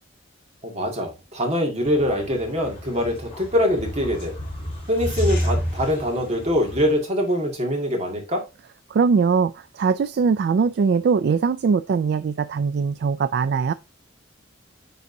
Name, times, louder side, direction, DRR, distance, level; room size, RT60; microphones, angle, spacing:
voice 1, 0.6-4.3 4.9-8.4, equal, 35° right, 2.1 m, -23 dB
sound 1, 1.8-7.0, equal, 30° left, 3.3 m, -30 dB
voice 2, 8.9-13.7, right 5 dB, 55° right, 0.3 m, -21 dB
9.6 x 4.0 x 2.7 m
head